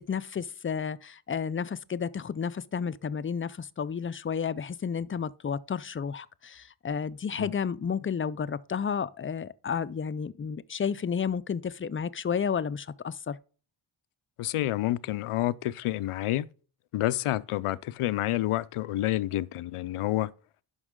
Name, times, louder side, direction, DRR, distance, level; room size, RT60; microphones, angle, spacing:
voice 1, 0.1-13.4, left 6 dB, 25° left, 0.4 m, -31 dB
voice 2, 14.4-16.5 16.9-20.3, left 15 dB, 90° left, 0.6 m, -29 dB
11.0 x 5.4 x 3.7 m
wide cardioid pair, 105°, 49 cm